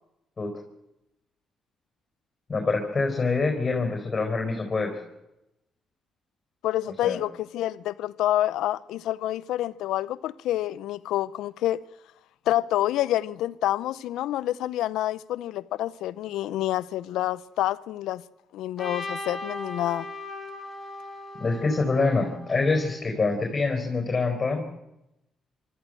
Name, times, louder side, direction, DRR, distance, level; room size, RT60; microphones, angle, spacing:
voice 1, 2.5-5.0 7.0-7.2 21.4-24.6, left 3 dB, 30° left, 4.5 m, -25 dB
voice 2, 6.6-11.8 12.5-18.2 18.5-20.1, left 13 dB, 85° left, 0.7 m, -28 dB
Trumpet, 18.8-22.9, left 2 dB, 15° left, 4.9 m, -38 dB
24.5 x 14.0 x 7.7 m
cardioid pair, 90°, 0 cm